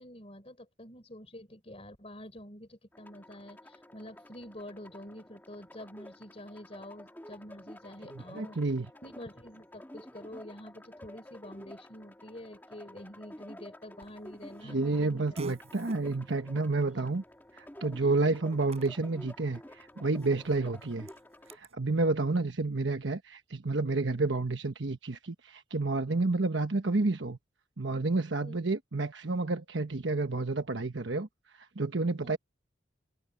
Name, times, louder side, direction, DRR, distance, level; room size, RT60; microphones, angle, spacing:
voice 1, 0.0-8.7 9.0-15.4 16.3-16.4 18.0-18.2 20.6-20.7 22.4-22.5 28.4-28.6 32.2-32.4, left 1 dB, 35° left, 3.9 m, -47 dB
sound 1, 2.9-21.6, left 1 dB, 10° left, 2.5 m, -51 dB
voice 2, 8.1-8.9 14.6-17.2 17.6-21.1 21.5-27.4 27.8-31.3 31.5-32.4, right 3 dB, 75° right, 1.2 m, -30 dB
Fart, 14.0-21.8, right 1 dB, 35° right, 7.9 m, -53 dB
head